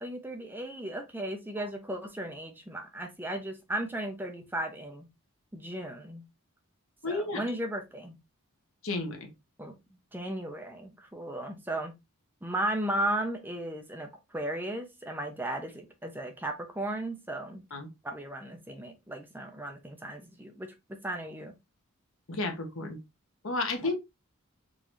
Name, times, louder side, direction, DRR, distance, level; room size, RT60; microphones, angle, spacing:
voice 1, 0.0-5.1 5.5-6.2 7.1-8.2 9.6-9.7 10.1-11.9 12.4-17.6 18.0-21.5, right 1 dB, 10° right, 0.6 m, -35 dB
voice 2, 7.0-7.4 8.8-9.3 17.7-17.9 22.3-23.0 23.4-23.9, left 2 dB, 65° left, 1.1 m, -32 dB
3.9 x 3.8 x 3.0 m
head